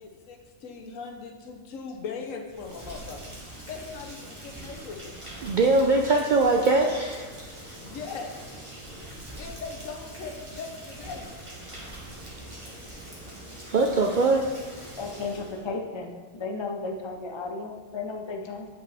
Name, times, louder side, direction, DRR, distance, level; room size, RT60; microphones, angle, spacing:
voice 1, 0.0-3.3 3.7-5.2 7.8-8.4 9.4-11.3, left 5 dB, 80° left, 4 dB, 1.2 m, -39 dB
Rain, 2.5-15.6, right 1 dB, 25° right, 1.3 m, -43 dB
voice 2, 5.4-7.3 13.7-14.5, right 3 dB, 75° right, 2 dB, 0.4 m, -22 dB
voice 3, 15.0-18.7, left 3 dB, 50° left, 3 dB, 0.3 m, -34 dB
8.5 x 5.3 x 3.4 m, 1.5 s
omnidirectional pair, 1.4 m